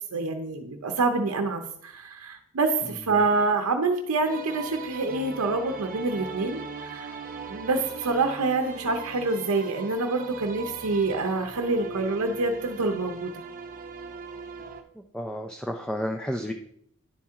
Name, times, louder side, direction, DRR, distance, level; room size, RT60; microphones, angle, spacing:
voice 1, 0.1-7.1 7.5-13.3, right 3 dB, 80° right, 5 dB, 0.7 m, -26 dB
sound 1, 4.2-14.8, right 5 dB, 40° right, 0.7 m, -40 dB
voice 2, 15.1-16.5, equal, 5° left, 3 dB, 0.4 m, -31 dB
10.5 x 4.4 x 3.6 m, 0.70 s
head